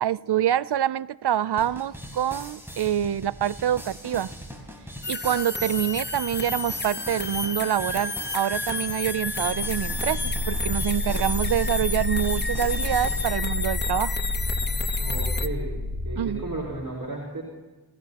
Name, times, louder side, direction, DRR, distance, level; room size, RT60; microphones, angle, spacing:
voice 1, 0.0-4.3 5.1-14.1 16.2-16.4, right 10 dB, 75° right, 19 dB, 0.5 m, -26 dB
sound 1, 1.6-13.3, equal, 5° right, 4.4 m, -41 dB
sound 2, 5.0-15.5, left 3 dB, 25° left, 0.9 m, -31 dB
sound 3, 9.1-16.8, left 2 dB, 75° left, 5.3 m, -30 dB
voice 2, 15.0-17.4, right 2 dB, 50° right, -5 dB, 5.2 m, -34 dB
29.0 x 16.5 x 2.9 m, 1.2 s
wide cardioid pair, 50°, 41 cm